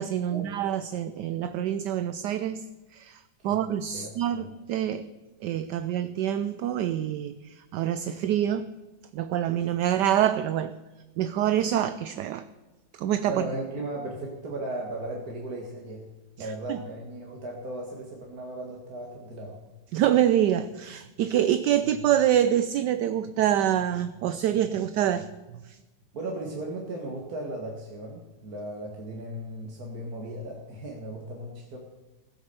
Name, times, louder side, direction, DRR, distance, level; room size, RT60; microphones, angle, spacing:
voice 1, 0.0-2.6 2.9-5.1 5.4-8.7 9.1-10.7 11.2-12.4 13.0-13.5 16.4-16.8 19.9-25.3 25.7-25.8, right 11 dB, 70° right, 12 dB, 1.1 m, -26 dB
voice 2, 3.9-4.5 13.2-16.0 16.4-19.6 26.1-31.8, right 1 dB, 50° right, -1 dB, 2.1 m, -36 dB
16.0 x 8.8 x 6.9 m, 1.1 s
omnidirectional pair, 2.1 m